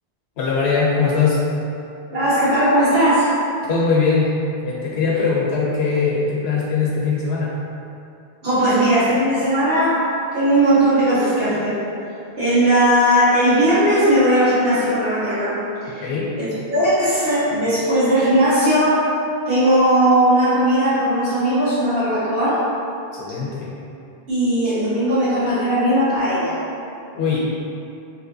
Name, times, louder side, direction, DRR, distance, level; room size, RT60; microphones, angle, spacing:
voice 1, 0.4-1.4 3.6-4.3 4.6-7.5 16.0-16.3 23.1-23.7 27.1-27.4, left 5 dB, 90° left, -5 dB, 0.8 m, -20 dB
voice 2, 2.1-3.3 8.4-11.8 12.4-16.1 16.4-19.0 19.5-22.6 24.3-26.6, right 1 dB, 70° right, -12 dB, 1.5 m, -18 dB
3.2 x 2.7 x 2.6 m, 2.6 s
omnidirectional pair, 1.0 m